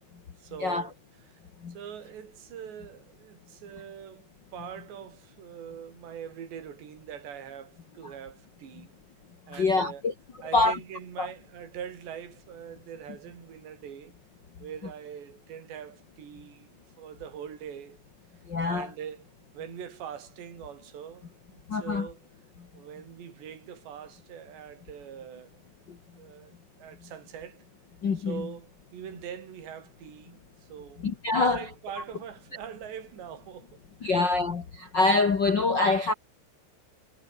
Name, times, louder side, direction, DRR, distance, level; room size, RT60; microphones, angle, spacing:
voice 1, 0.4-0.9 1.3-1.4 1.7-8.9 9.5-10.0 10.4-14.2 14.6-16.7 17.0-18.0 18.6-19.2 19.5-22.2 22.7-25.6 26.1-27.6 28.2-31.1 31.5-34.3, right 8 dB, 75° right, 5.8 m, -43 dB
voice 2, 9.5-10.1 10.5-10.8 11.2-11.3 18.5-18.9 21.7-22.1 25.9-26.0 28.0-28.5 31.0-31.7 34.0-36.1, left 3 dB, 80° left, 1.0 m, -25 dB
omnidirectional pair, 5.0 m